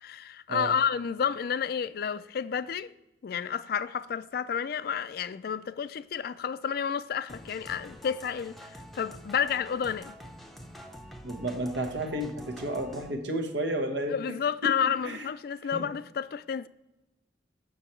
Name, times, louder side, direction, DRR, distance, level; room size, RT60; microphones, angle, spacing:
voice 1, 0.0-2.9 3.2-10.1 14.1-16.7, left 7 dB, 60° left, 0.3 m, -30 dB
sound 1, 7.3-13.1, equal, ahead, 0.6 m, -47 dB
voice 2, 11.2-14.2 15.0-15.2 15.7-15.9, right 1 dB, 85° right, 1.1 m, -32 dB
7.1 x 6.4 x 4.4 m
head